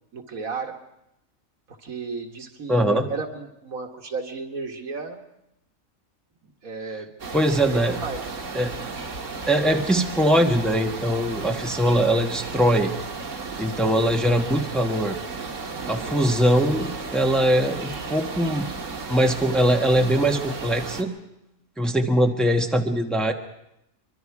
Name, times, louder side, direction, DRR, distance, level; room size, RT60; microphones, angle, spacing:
voice 1, 0.1-0.8 1.7-5.2 6.4-7.1 7.6-8.4 15.8-16.2, right 4 dB, 85° right, 3 dB, 2.2 m, -34 dB
voice 2, 2.7-3.1 7.3-8.0 8.5-8.8 9.5-12.9 13.6-15.2 15.9-18.7 19.1-21.1 21.8-23.3, equal, ahead, 3 dB, 1.3 m, -21 dB
sound 1, 7.2-21.0, right 4 dB, 65° right, 1.9 m, -34 dB
24.0 x 23.5 x 4.8 m, 0.84 s
omnidirectional pair, 1.4 m